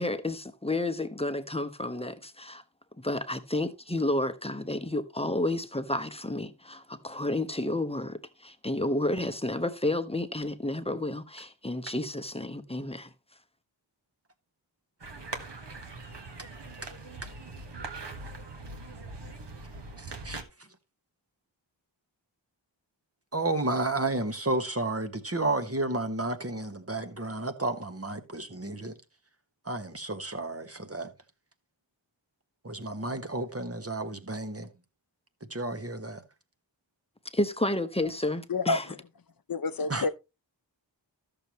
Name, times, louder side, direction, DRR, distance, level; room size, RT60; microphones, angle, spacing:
voice 1, 0.0-2.6 3.0-13.1 37.3-38.9, left 1 dB, 15° left, 1.0 m, -31 dB
sound 1, 15.0-20.4, right 3 dB, 65° right, 1.6 m, -41 dB
voice 2, 20.0-20.4 23.3-28.9 29.6-31.1 32.6-34.7 35.5-36.2 39.9-40.1, right 2 dB, 30° right, 1.4 m, -32 dB
voice 3, 39.5-40.1, left 3 dB, 50° left, 0.7 m, -28 dB
13.5 x 6.8 x 3.1 m
wide cardioid pair, 65°, 46 cm